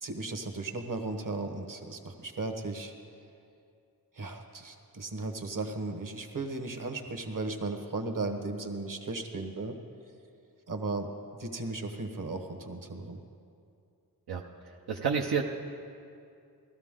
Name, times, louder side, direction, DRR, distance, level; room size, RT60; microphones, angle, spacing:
voice 1, 0.0-2.9 4.1-9.7 10.7-11.1 11.4-13.2, right 3 dB, 55° right, 5 dB, 1.3 m, -36 dB
voice 2, 14.9-15.4, right 6 dB, 85° right, 0 dB, 0.8 m, -28 dB
16.5 x 13.0 x 3.8 m, 2.5 s
cardioid pair, 45°, 38 cm